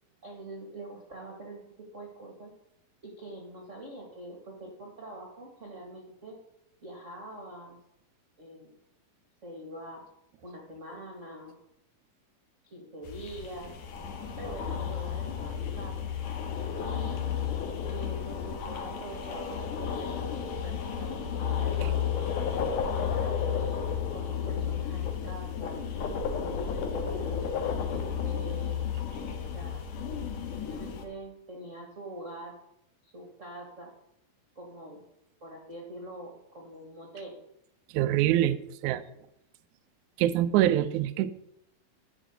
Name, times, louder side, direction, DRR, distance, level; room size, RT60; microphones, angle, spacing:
voice 1, 0.2-2.5 3.0-6.4 6.8-7.8 8.4-8.7 9.4-10.0 10.4-11.5 12.6-13.7 14.4-16.0 16.8-17.3 17.9-22.4 23.1-25.8 26.4-28.8 29.4-29.8 30.5-32.6 33.0-33.9 34.5-35.0 35.4-37.4, right 1 dB, 35° right, 1 dB, 1.3 m, -44 dB
sound 1, 13.0-31.0, left 7 dB, 65° left, 2.6 m, -32 dB
voice 2, 37.9-38.6 38.8-39.0 40.2-41.3, right 12 dB, 85° right, 12 dB, 1.7 m, -24 dB
12.5 x 5.0 x 8.0 m, 0.79 s
omnidirectional pair, 4.2 m